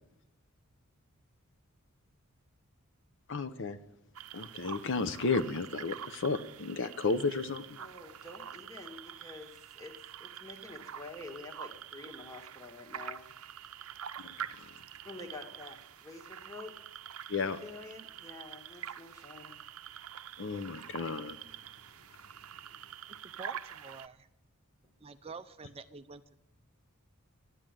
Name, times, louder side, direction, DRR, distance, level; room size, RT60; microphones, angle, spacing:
voice 1, 3.3-3.8 4.3-7.8 14.4-14.7 17.3-17.6 20.4-21.4, left 4 dB, 55° left, 11 dB, 0.7 m, -33 dB
sound 1, 4.1-24.1, right 9 dB, 70° right, 0.6 m, -46 dB
voice 2, 7.8-9.9 10.2-13.2 15.0-16.7 17.6-19.6, left 2 dB, 15° left, 3 dB, 1.8 m, -48 dB
voice 3, 23.2-24.3 25.0-26.4, right 4 dB, 25° right, 8 dB, 0.5 m, -48 dB
12.0 x 11.0 x 9.0 m, 0.86 s
head